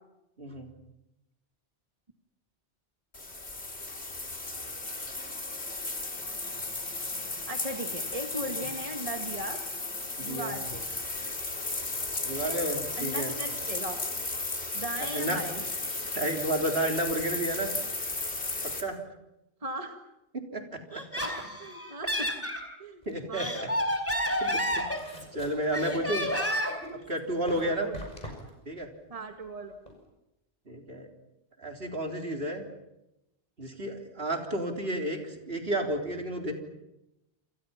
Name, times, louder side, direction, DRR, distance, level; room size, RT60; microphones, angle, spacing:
voice 1, 0.4-0.7 8.5-8.6 10.2-10.6 12.2-13.3 15.1-15.4 16.1-17.7 18.8-19.0 20.3-20.8 23.1-23.5 24.4-26.3 27.1-27.9 28.7-28.9 30.7-31.1 31.6-32.6 33.6-36.5, right 1 dB, 65° right, 3 dB, 4.0 m, -31 dB
sound 1, 3.1-18.8, left 2 dB, 90° left, 3.4 m, -35 dB
voice 2, 7.3-9.6 10.2-10.9 12.3-12.6 13.0-14.0 14.7-15.6 19.6-20.0 20.9-22.3 22.8-23.0 23.3-23.5 27.5-28.0 29.1-29.8, right 1 dB, 35° right, 4 dB, 1.9 m, -38 dB
Laughter, 20.9-22.6 23.2-25.4 25.7-26.9, equal, 15° left, 4.2 m, -30 dB
sound 2, 23.0-30.0, left 1 dB, 40° left, 7.0 m, -47 dB
28.5 x 28.0 x 5.9 m, 0.91 s
omnidirectional pair, 1.1 m